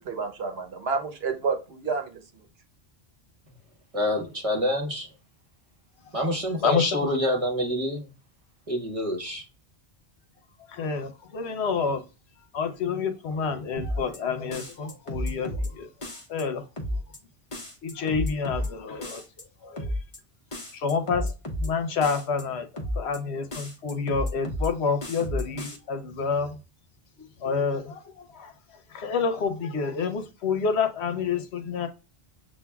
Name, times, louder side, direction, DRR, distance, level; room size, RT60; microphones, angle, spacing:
voice 1, 0.0-2.2, right 5 dB, 70° right, 1.1 m, -29 dB
voice 2, 3.9-5.1 6.1-8.1 8.7-9.4, equal, 35° right, 1.1 m, -27 dB
voice 3, 6.6-7.2 10.7-12.0 12.5-15.9 16.3-16.6 17.8-19.2 19.6-19.9 20.7-21.3 21.6-26.6 27.4-28.5 28.9-31.9, left 5 dB, 80° left, 1.0 m, -28 dB
sound 1, 13.8-14.2 14.5-15.7 16.0-16.4 16.8-17.2 17.5-18.7 19.0-19.4 19.8-20.2 20.5-21.7 22.0-22.4 22.8-23.2 23.5-24.7 25.0-25.8, left 1 dB, 30° left, 0.9 m, -32 dB
7.2 x 2.5 x 2.3 m
omnidirectional pair, 1.1 m